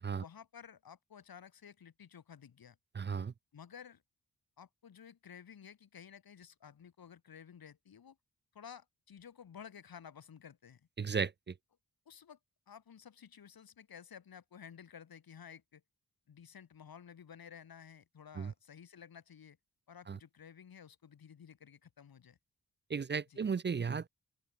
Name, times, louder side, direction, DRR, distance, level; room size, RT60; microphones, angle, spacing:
voice 1, 0.1-2.8 3.5-4.0 4.6-8.2 8.5-10.9 12.1-12.4 12.7-15.8 16.3-19.6 19.9-22.4 23.3-23.4, left 8 dB, 85° left, 2.7 m, -54 dB
voice 2, 2.9-3.3 11.0-11.5 18.4-18.5 20.1-20.2 22.9-24.1, right 5 dB, 30° right, 0.5 m, -35 dB
open air
wide cardioid pair, 100°, 35 cm